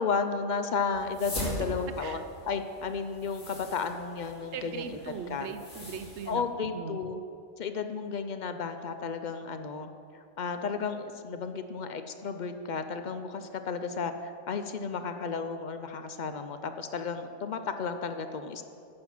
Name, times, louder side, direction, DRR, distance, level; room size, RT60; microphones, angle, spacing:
voice 1, 0.0-5.0 5.3-5.5 6.3-7.2 7.6-18.6, left 5 dB, 55° left, 8 dB, 0.5 m, -33 dB
sound 1, 0.9-6.3, left 1 dB, 70° left, 2.9 m, -41 dB
voice 2, 4.5-6.4 6.7-7.0, right 7 dB, 70° right, 9 dB, 0.9 m, -39 dB
9.6 x 7.4 x 6.0 m, 2.5 s
omnidirectional pair, 1.3 m